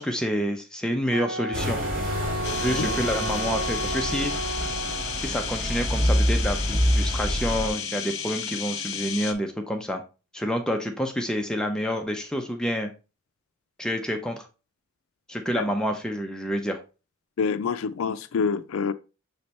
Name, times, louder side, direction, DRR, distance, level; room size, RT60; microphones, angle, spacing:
voice 1, 0.0-1.8 2.5-4.3 5.2-10.0 10.3-12.9 13.8-14.5 15.3-16.8, equal, 5° left, 0.5 m, -28 dB
Wind instrument woodwind instrument, 1.1-5.4, right 1 dB, 75° right, 0.7 m, -32 dB
sound 1, 1.5-7.7, equal, 40° right, 2.6 m, -27 dB
sound 2, 2.4-9.3, left 7 dB, 55° left, 0.9 m, -33 dB
voice 2, 17.4-18.9, left 5 dB, 80° left, 0.4 m, -26 dB
7.0 x 3.2 x 4.1 m
head